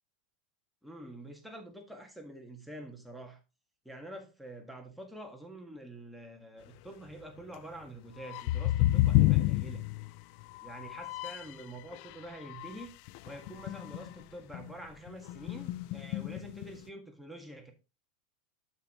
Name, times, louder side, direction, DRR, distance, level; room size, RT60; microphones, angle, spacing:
voice 1, 0.8-3.4 3.8-9.9 10.6-12.9 13.2-17.7, right 1 dB, ahead, 1.6 m, -46 dB
sound 1, 8.2-11.6 11.9-14.2 14.5-14.7 15.1-16.8, left 17 dB, 50° left, 0.3 m, -30 dB
8.3 x 6.1 x 3.0 m
supercardioid pair, 140°, 4 cm